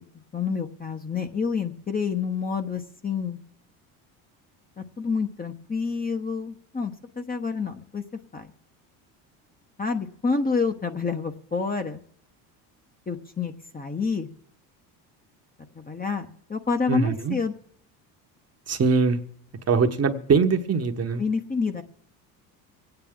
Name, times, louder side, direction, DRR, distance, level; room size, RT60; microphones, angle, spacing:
voice 1, 0.3-3.4 4.8-8.0 8.3-8.5 9.8-12.0 13.1-14.3 15.7-17.5 21.2-21.8, left 5 dB, 20° left, 6 dB, 1.0 m, -28 dB
voice 2, 16.9-17.4 18.7-19.2 19.7-21.2, right 4 dB, 30° right, 6 dB, 1.2 m, -22 dB
24.5 x 9.1 x 3.7 m, 0.68 s
hypercardioid pair, 75°, 47 cm